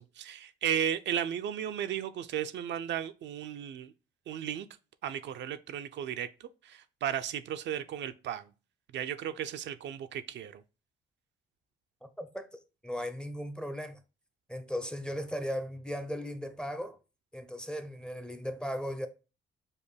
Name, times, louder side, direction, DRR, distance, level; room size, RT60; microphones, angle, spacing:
voice 1, 0.0-3.9 4.3-4.7 5.0-6.3 6.6-8.5 8.9-10.6, right 9 dB, 65° right, 0.4 m, -35 dB
voice 2, 12.0-12.5 12.8-14.0 14.5-17.0 17.3-19.1, equal, 5° left, 0.5 m, -37 dB
5.3 x 2.2 x 3.2 m
cardioid pair, 90°, 20 cm